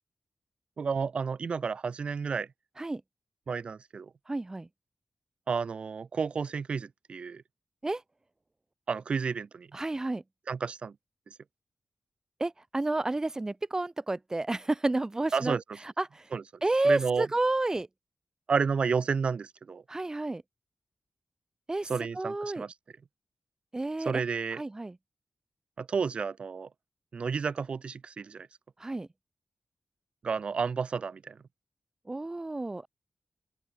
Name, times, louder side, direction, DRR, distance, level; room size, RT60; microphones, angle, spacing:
voice 1, 0.8-2.5 3.5-4.1 5.5-7.4 8.9-9.7 10.5-10.9 15.3-15.6 16.3-16.4 16.8-17.3 18.5-19.8 21.8-22.7 24.0-24.6 25.8-26.7 27.1-28.5 30.2-31.4, right 5 dB, 70° right, 2.5 m, -31 dB
voice 2, 4.3-4.7 7.8-8.0 9.7-10.2 12.4-15.6 16.0-16.3 16.6-17.9 19.9-20.4 21.7-21.9 22.2-22.6 23.7-24.2 24.5-25.0 28.8-29.1 32.1-32.9, right 2 dB, 30° right, 3.7 m, -30 dB
open air
cardioid pair, 40°, 2 cm